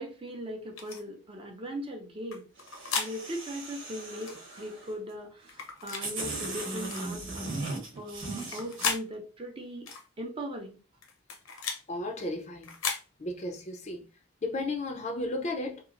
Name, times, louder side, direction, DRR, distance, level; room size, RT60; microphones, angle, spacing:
voice 1, 0.0-2.5 3.0-9.9 10.2-10.8, equal, 25° right, 0.5 m, -39 dB
sound 1, 0.8-1.0 2.3-3.1 4.2-4.4 5.5-6.1 6.9-7.1 8.3-9.0 9.9-10.0 11.0-11.8 12.6-13.0, left 5 dB, 85° left, 0.7 m, -34 dB
sound 2, 2.6-4.9 5.6-5.7 6.0-8.9, right 2 dB, 75° right, 1.0 m, -38 dB
voice 2, 11.9-12.7 13.2-14.0 14.4-15.8, left 2 dB, 35° left, 0.4 m, -34 dB
2.8 x 2.3 x 2.4 m
head